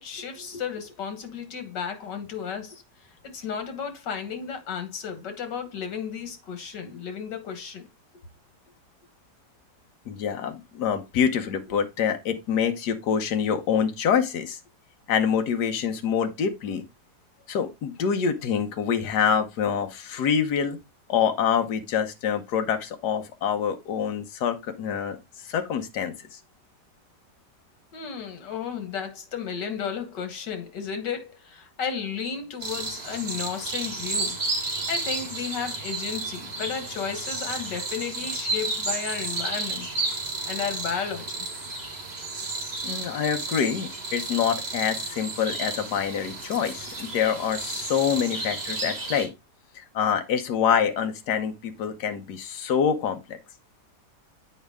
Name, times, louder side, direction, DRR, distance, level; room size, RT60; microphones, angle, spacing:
voice 1, 0.0-2.8 3.3-7.9 27.9-34.4 34.9-39.9 40.5-41.5, left 7 dB, 90° left, 2.0 m, -33 dB
voice 2, 10.1-14.6 15.1-16.8 17.5-20.8 21.1-25.2 25.5-26.1 42.8-49.3 49.7-53.4, left 7 dB, 75° left, 1.5 m, -26 dB
sound 1, 32.6-49.3, right 3 dB, 35° right, 2.0 m, -32 dB
7.9 x 4.8 x 3.5 m
omnidirectional pair, 1.8 m